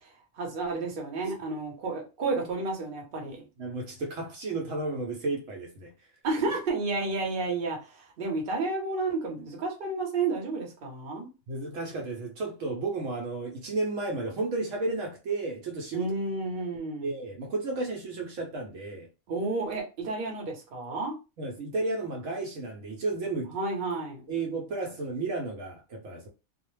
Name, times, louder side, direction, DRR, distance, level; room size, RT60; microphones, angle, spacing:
voice 1, 0.3-3.4 6.2-11.3 15.9-17.1 19.3-21.1 23.5-24.2, right 3 dB, 50° right, 0.9 m, -31 dB
voice 2, 3.6-5.9 11.5-16.1 17.0-19.1 21.4-23.5 24.3-26.3, right 3 dB, 75° right, 1.0 m, -33 dB
2.3 x 2.1 x 3.0 m
omnidirectional pair, 1.4 m